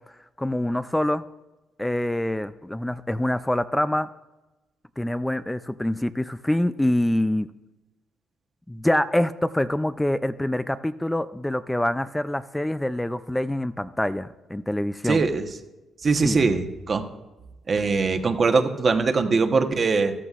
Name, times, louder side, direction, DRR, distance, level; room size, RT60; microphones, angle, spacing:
voice 1, 0.4-1.2 1.8-4.1 5.0-7.5 8.7-15.2 16.2-16.4, left 1 dB, 10° left, 13 dB, 0.4 m, -25 dB
voice 2, 15.0-15.5 16.0-17.0 17.7-20.1, right 4 dB, 40° right, 6 dB, 1.0 m, -21 dB
13.5 x 13.0 x 2.5 m, 1.1 s
cardioid pair, 90°, 0 cm